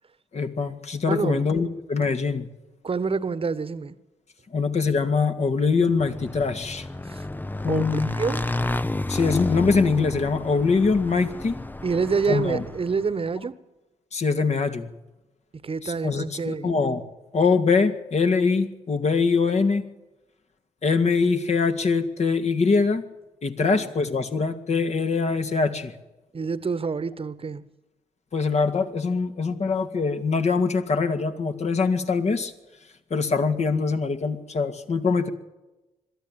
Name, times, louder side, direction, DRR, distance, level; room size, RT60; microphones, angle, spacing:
voice 1, 0.3-2.5 4.5-6.9 7.6-8.1 9.1-11.6 12.3-12.6 14.1-14.9 15.8-17.0 17.3-19.8 20.8-23.0 23.4-25.9 28.3-32.5 33.1-35.3, left 4 dB, 50° left, 2.2 m, -23 dB
voice 2, 1.0-1.5 2.8-3.9 7.0-7.2 7.7-8.5 11.8-13.6 15.6-16.7 23.6-23.9 26.3-27.6, right 5 dB, 40° right, 1.3 m, -27 dB
Motorcycle / Engine, 5.8-13.1, left 2 dB, 10° left, 0.7 m, -31 dB
22.0 x 13.5 x 9.0 m
hypercardioid pair, 45°, 15 cm